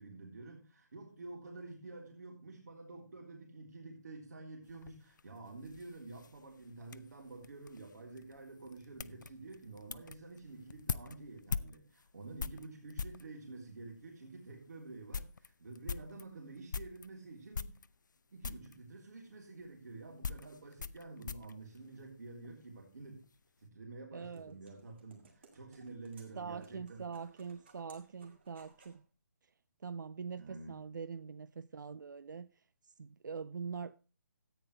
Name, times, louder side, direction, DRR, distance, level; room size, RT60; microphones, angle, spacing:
voice 1, 0.0-17.7 18.3-23.2 23.6-27.1 30.4-30.8, right 3 dB, 65° right, 3.4 m, -49 dB
sound 1, 4.6-13.3 14.0-14.1 14.5-14.6 14.9-17.1 17.5-18.2 18.4-18.8 19.6-22.5 22.8-23.4, left 5 dB, 85° left, 0.6 m, -43 dB
sound 2, 24.1-29.0, right 4 dB, 35° right, 2.4 m, -64 dB
voice 2, 24.1-24.5 26.4-29.1 29.8-32.5 32.8-34.0, right 5 dB, 85° right, 0.4 m, -43 dB
13.5 x 9.1 x 3.2 m
hypercardioid pair, 165°, 10 cm